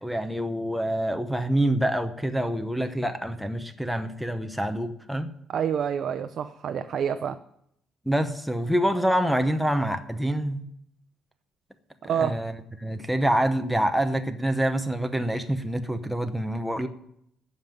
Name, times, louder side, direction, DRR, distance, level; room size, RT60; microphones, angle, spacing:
voice 1, 0.0-5.3 8.1-10.7 12.2-12.5 12.8-16.9, right 1 dB, ahead, 9 dB, 0.8 m, -26 dB
voice 2, 5.5-7.4 12.0-12.4, right 8 dB, 50° right, 9 dB, 0.6 m, -27 dB
15.0 x 5.4 x 9.4 m, 0.74 s
cardioid pair, 145°, 0 cm